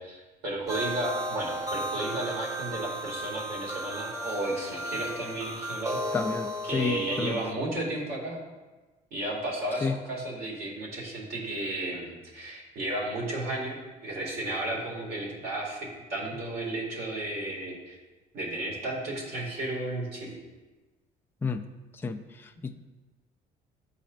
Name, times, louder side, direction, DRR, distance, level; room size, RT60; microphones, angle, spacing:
voice 1, 0.0-6.0 6.6-8.4 9.1-13.8 14.0-18.0 18.3-20.4, right 1 dB, 65° right, -3 dB, 2.2 m, -33 dB
sound 1, 0.7-7.5, right 1 dB, 20° right, 0.7 m, -35 dB
voice 2, 6.1-7.4 9.8-10.0 21.4-21.6 22.0-22.2 22.6-22.7, left 4 dB, 15° left, 5 dB, 0.4 m, -29 dB
11.5 x 4.1 x 2.5 m, 1.2 s
cardioid pair, 110°, 17 cm